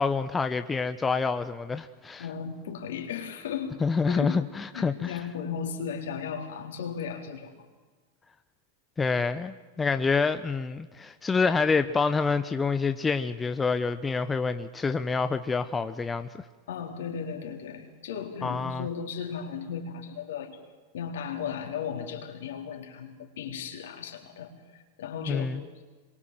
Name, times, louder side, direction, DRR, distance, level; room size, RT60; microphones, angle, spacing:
voice 1, 0.0-2.2 3.8-5.2 9.0-16.3 18.4-18.9 25.3-25.6, left 4 dB, 15° left, 10 dB, 0.9 m, -27 dB
voice 2, 2.2-3.8 4.1-4.4 4.7-7.6 16.7-20.6 20.9-25.5, left 7 dB, 70° left, 3 dB, 4.2 m, -36 dB
26.5 x 23.0 x 7.8 m, 1.3 s
hypercardioid pair, 100°, 0 cm